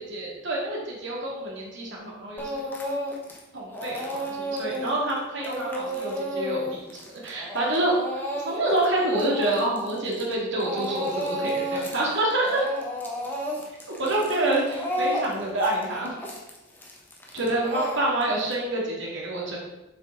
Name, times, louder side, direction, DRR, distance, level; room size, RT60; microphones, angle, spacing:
voice 1, 0.1-2.6 3.5-7.9 8.4-12.7 14.0-16.1 17.3-19.6, right 1 dB, 60° right, -3 dB, 2.3 m, -27 dB
Speech / Crying sobbing, 2.4-3.4 3.7-10.3 10.6-12.0 12.3-18.5, equal, 10° left, 1.1 m, -32 dB
7.4 x 6.1 x 3.9 m, 0.99 s
head